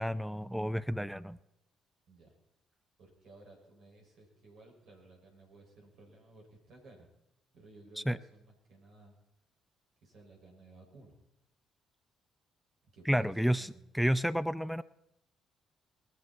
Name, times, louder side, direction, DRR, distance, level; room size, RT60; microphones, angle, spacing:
voice 1, 0.0-1.4 8.1-8.2 13.1-14.8, equal, ahead, 14 dB, 0.6 m, -31 dB
voice 2, 3.0-7.1 7.5-9.1 10.0-11.2 12.8-13.9, right 2 dB, 55° right, 0 dB, 6.5 m, -57 dB
20.0 x 15.0 x 4.5 m, 0.83 s
figure-of-eight pair, 45°, 0 cm